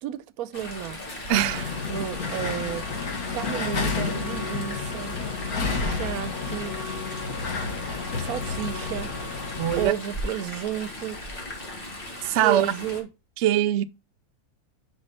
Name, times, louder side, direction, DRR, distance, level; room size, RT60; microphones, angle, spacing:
voice 1, 0.0-1.0 1.9-2.9 3.3-5.2 5.8-6.8 8.2-9.1 9.8-11.2 12.4-13.1, right 11 dB, 85° right, 1.1 m, -32 dB
Chatter / Stream, 0.5-13.0, left 1 dB, 40° left, 2.0 m, -38 dB
sound 1, 1.0-2.1 2.9-3.2 3.6-3.7 3.9-4.1 4.7-5.0, left 1 dB, 65° left, 3.8 m, -49 dB
sound 2, 1.3-9.9, left 4 dB, 85° left, 1.7 m, -31 dB
voice 2, 1.3-1.7 9.6-9.9 12.2-12.7 13.4-13.8, right 12 dB, 65° right, 0.8 m, -22 dB
6.5 x 5.2 x 4.0 m
omnidirectional pair, 1.5 m